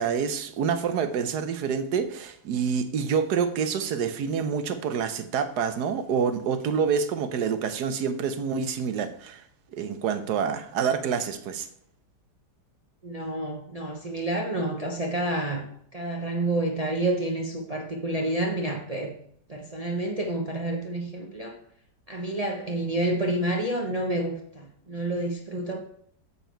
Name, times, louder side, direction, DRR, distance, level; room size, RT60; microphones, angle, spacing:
voice 1, 0.0-9.4 9.7-11.7, right 6 dB, 75° right, 10 dB, 1.3 m, -27 dB
voice 2, 13.0-15.6 15.9-19.1 19.5-21.6 22.1-25.8, right 1 dB, 30° right, 0 dB, 0.7 m, -29 dB
7.2 x 6.8 x 4.4 m, 0.65 s
omnidirectional pair, 1.8 m